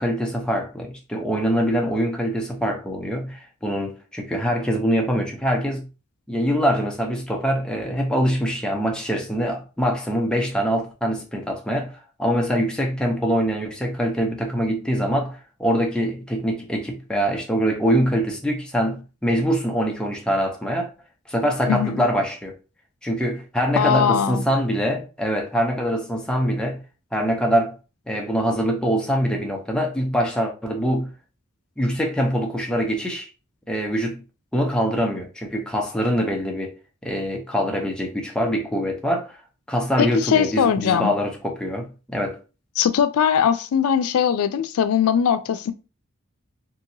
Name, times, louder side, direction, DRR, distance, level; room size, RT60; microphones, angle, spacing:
voice 1, 0.0-5.9 6.3-11.9 12.2-20.9 21.3-22.6 23.0-26.8 27.1-27.7 28.1-31.1 31.8-33.3 33.7-34.2 34.5-36.7 37.0-39.4 39.7-42.4, equal, 5° left, 0.5 m, -24 dB
voice 2, 21.7-22.1 23.8-24.4 40.0-41.1 42.8-45.7, left 8 dB, 85° left, 0.3 m, -20 dB
2.9 x 2.7 x 2.6 m
head